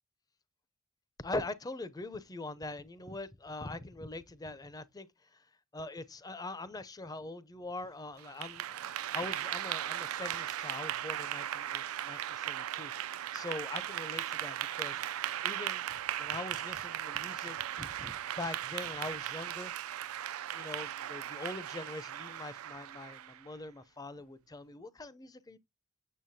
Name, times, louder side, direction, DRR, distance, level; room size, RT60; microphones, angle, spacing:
voice 1, 1.2-5.5 5.7-8.8 9.1-12.9 13.3-15.0 15.4-19.7 20.5-25.6, left 2 dB, 20° left, 0.5 m, -42 dB
Clapping / Applause, 8.2-23.5, right 11 dB, 85° right, 0.4 m, -37 dB
7.4 x 6.9 x 2.7 m
head